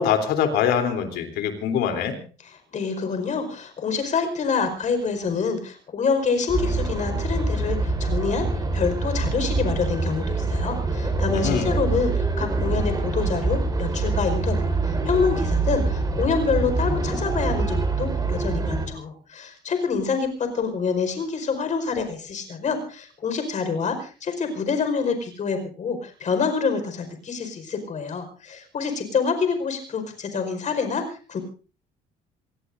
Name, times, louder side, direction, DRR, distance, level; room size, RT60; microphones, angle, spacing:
voice 1, 0.0-2.2 11.3-11.7, left 8 dB, 80° left, 7 dB, 3.3 m, -23 dB
voice 2, 2.4-31.4, left 5 dB, 45° left, 7 dB, 4.8 m, -27 dB
sound 1, 6.5-18.9, right 3 dB, 20° right, 4.7 m, -25 dB
27.0 x 18.5 x 2.6 m, 0.37 s
cardioid pair, 110°, 17 cm